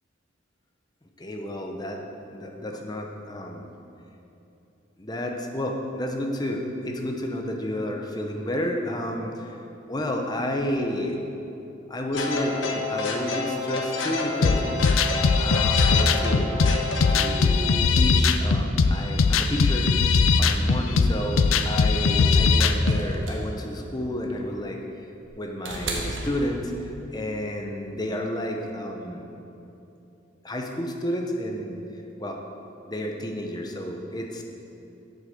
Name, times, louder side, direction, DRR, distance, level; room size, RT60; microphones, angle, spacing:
voice 1, 1.2-2.0 2.3-3.7 5.0-9.5 9.9-11.2 11.9-14.6 15.4-16.5 17.1-20.1 20.4-24.8 25.4-29.3 30.4-31.8 32.2-32.4 32.9-34.4, left 1 dB, 20° left, 2 dB, 0.9 m, -31 dB
sound 1, 12.1-17.3, left 3 dB, 70° left, 1.1 m, -29 dB
sound 2, 14.4-23.0, left 4 dB, 90° left, 0.5 m, -20 dB
sound 3, 22.8-27.1 28.3-28.4, right 2 dB, 70° right, 1.4 m, -35 dB
8.1 x 8.0 x 6.5 m, 2.9 s
head